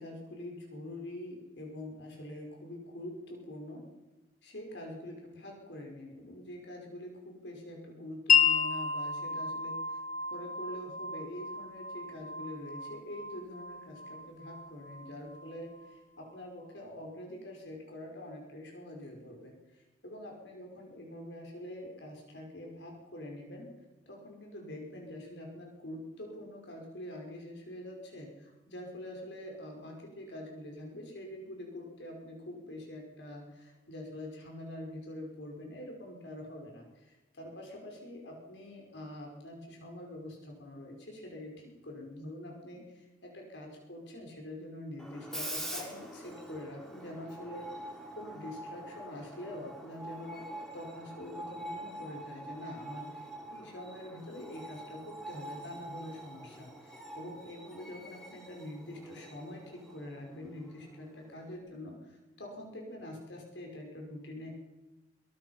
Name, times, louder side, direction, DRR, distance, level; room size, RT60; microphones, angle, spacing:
voice 1, 0.0-3.8 4.4-10.0 10.3-23.7 24.1-64.5, left 1 dB, 85° left, 0 dB, 5.6 m, -45 dB
Wind chime, 8.3-15.9, left 6 dB, 45° left, 1.3 m, -32 dB
Screech, 45.0-61.6, right 1 dB, 5° left, 3.1 m, -45 dB
23.0 x 21.5 x 5.9 m, 1.1 s
head